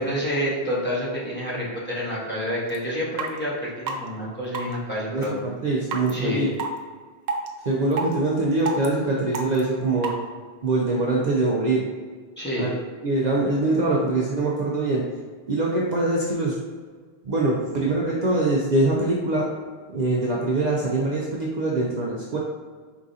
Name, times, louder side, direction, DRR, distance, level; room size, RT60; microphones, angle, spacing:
voice 1, 0.0-5.3 6.1-6.5 12.4-12.7, equal, 10° left, -7 dB, 1.1 m, -28 dB
sound 1, 2.7-2.8 3.2-3.3 3.9-4.0 4.5-4.7 5.2-5.3 5.9-6.1 6.6-6.7 7.3-7.5 7.9-8.1 8.6-8.9 9.3-9.6 10.0-10.1, right 5 dB, 80° right, 0.9 m, -27 dB
voice 2, 5.1-6.5 7.7-10.2 10.6-11.9 12.6-12.8 13.0-15.1 15.5-16.6 17.2-19.5 19.9-22.4, right 2 dB, 50° right, -3 dB, 0.6 m, -23 dB
4.8 x 3.6 x 2.7 m, 1.5 s
omnidirectional pair, 1.1 m